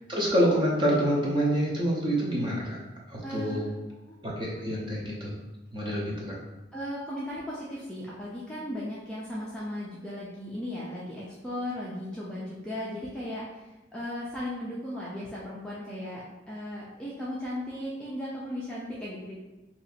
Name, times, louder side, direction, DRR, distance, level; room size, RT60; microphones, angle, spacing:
voice 1, 0.1-2.8 3.1-3.7 4.2-5.3 5.7-6.4, equal, 25° right, -4 dB, 0.7 m, -27 dB
voice 2, 3.2-3.8 4.1-4.2 6.7-13.6 13.9-19.4, left 1 dB, 5° left, -8 dB, 0.4 m, -36 dB
2.8 x 2.5 x 4.1 m, 1.1 s
head